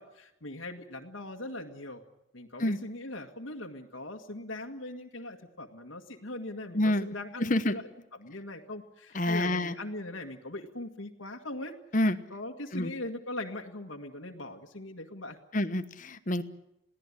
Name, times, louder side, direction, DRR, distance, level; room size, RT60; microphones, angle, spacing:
voice 1, 0.0-2.0 2.3-7.9 8.2-11.8 12.3-15.4, left 1 dB, 85° left, 2 dB, 1.9 m, -40 dB
voice 2, 6.7-7.1 7.5-7.7 9.1-9.7 11.9-12.2 12.7-12.9 15.5-16.4, left 1 dB, 40° left, 12 dB, 1.1 m, -27 dB
22.0 x 16.5 x 9.8 m, 0.84 s
head